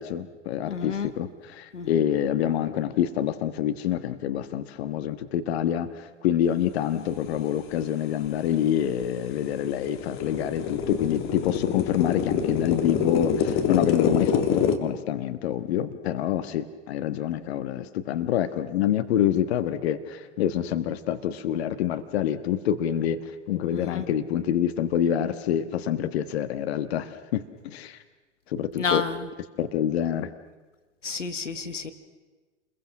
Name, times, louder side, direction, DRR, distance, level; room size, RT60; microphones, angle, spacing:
voice 1, 0.0-23.2 23.5-28.0 28.5-29.0 29.6-30.3, left 10 dB, 60° left, 11 dB, 1.6 m, -27 dB
voice 2, 0.7-1.1 1.7-1.9 23.7-24.0 28.8-29.2 31.0-31.9, left 5 dB, 85° left, 10 dB, 1.8 m, -30 dB
sound 1, 8.3-8.4 8.8-14.8, left 7 dB, 35° left, 2.3 m, -26 dB
29.5 x 22.0 x 6.1 m, 1.3 s
hypercardioid pair, 105°, 36 cm